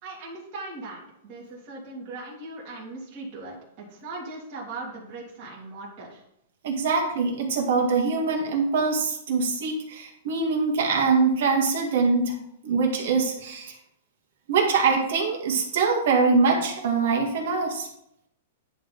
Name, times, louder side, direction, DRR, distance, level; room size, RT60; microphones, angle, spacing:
voice 1, 0.0-6.2, right 2 dB, 40° right, -5 dB, 2.4 m, -39 dB
voice 2, 6.6-12.3 12.6-13.7 14.5-17.9, right 4 dB, 65° right, 0 dB, 1.9 m, -23 dB
10.5 x 3.5 x 4.0 m, 0.78 s
hypercardioid pair, 145°, 0 cm